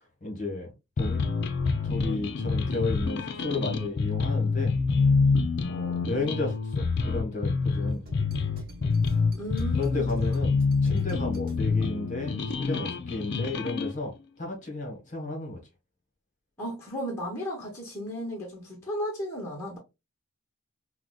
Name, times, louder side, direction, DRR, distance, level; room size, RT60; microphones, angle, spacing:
voice 1, 0.2-0.7 1.0-1.2 1.8-4.7 5.7-8.0 9.7-10.6 10.8-15.6, left 2 dB, 35° left, 1.0 m, -33 dB
sound 1, 1.0-13.9, left 4 dB, 50° left, 0.4 m, -27 dB
sound 2, 7.9-12.1, left 1 dB, 40° right, 0.9 m, -46 dB
voice 2, 9.4-10.1 16.6-19.8, equal, 10° left, 0.8 m, -34 dB
4.7 x 2.0 x 2.2 m
head